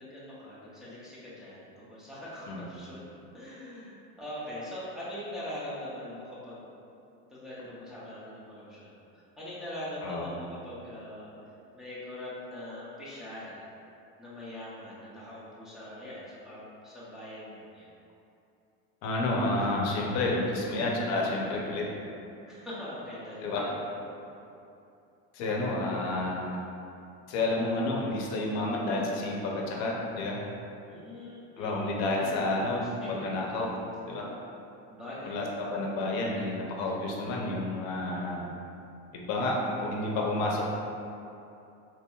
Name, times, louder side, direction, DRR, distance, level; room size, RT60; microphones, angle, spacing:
voice 1, 0.0-6.7 7.3-11.3 11.7-13.6 14.2-17.9 22.5-24.5 30.9-33.1 34.9-35.7, left 1 dB, ahead, -9 dB, 0.3 m, -42 dB
voice 2, 19.0-21.9 23.4-23.7 25.3-26.6 27.3-30.4 31.6-33.7 34.1-34.3 35.2-38.5 39.1-40.7, left 2 dB, 45° left, -2 dB, 0.6 m, -30 dB
4.3 x 3.0 x 2.2 m, 2.7 s
cardioid pair, 170°, 36 cm